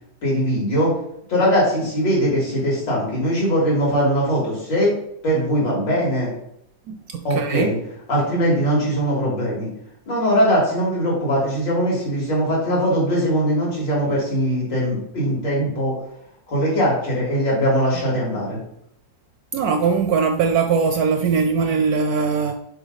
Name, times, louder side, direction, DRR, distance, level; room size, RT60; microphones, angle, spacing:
voice 1, 0.2-0.9 1.3-4.9 5.2-6.3 7.3-7.8 8.1-9.7 10.1-16.0 16.5-18.6, equal, 80° left, -5 dB, 3.4 m, -21 dB
voice 2, 6.9-7.7 19.5-22.5, right 5 dB, 70° right, 7 dB, 0.9 m, -21 dB
6.6 x 4.7 x 4.0 m, 0.73 s
omnidirectional pair, 2.0 m